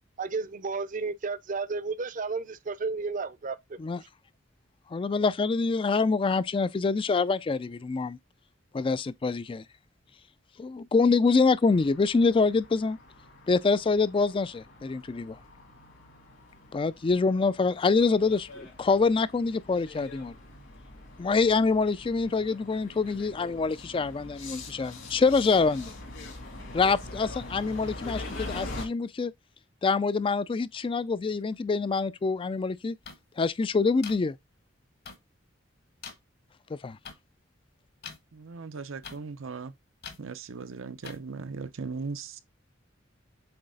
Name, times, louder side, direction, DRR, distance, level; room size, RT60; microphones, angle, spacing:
voice 1, 0.2-3.6, right 4 dB, 40° right, 0.6 m, -32 dB
voice 2, 4.9-8.2 8.7-9.6 10.6-13.0 13.5-15.4 16.7-20.3 21.2-25.9 26.7-29.3 29.8-33.0 33.4-34.4 36.7-37.0, left 4 dB, 25° left, 0.3 m, -25 dB
sound 1, 11.6-28.8, left 2 dB, 70° left, 2.8 m, -44 dB
sound 2, 33.1-33.2 34.0-34.2 35.1-35.2 36.0-36.1 37.1-37.2 38.0-38.2 39.0-39.2 40.0-40.2 41.0-41.2, left 6 dB, 55° left, 1.3 m, -41 dB
voice 3, 38.3-39.7 40.2-42.4, right 4 dB, 85° right, 0.7 m, -38 dB
7.9 x 3.2 x 3.8 m
head